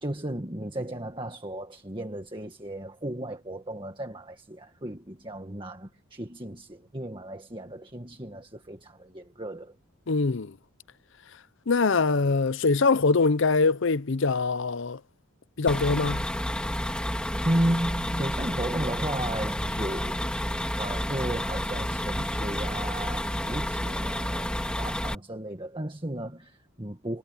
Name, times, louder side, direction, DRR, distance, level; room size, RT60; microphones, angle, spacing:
voice 1, 0.0-9.8 17.4-20.2 20.8-27.2, right 1 dB, 20° right, 1.8 m, -34 dB
voice 2, 10.1-10.5 11.7-15.0 15.6-16.2, left 4 dB, 55° left, 0.6 m, -23 dB
sound 1, 15.7-25.1, equal, 5° left, 2.7 m, -30 dB
head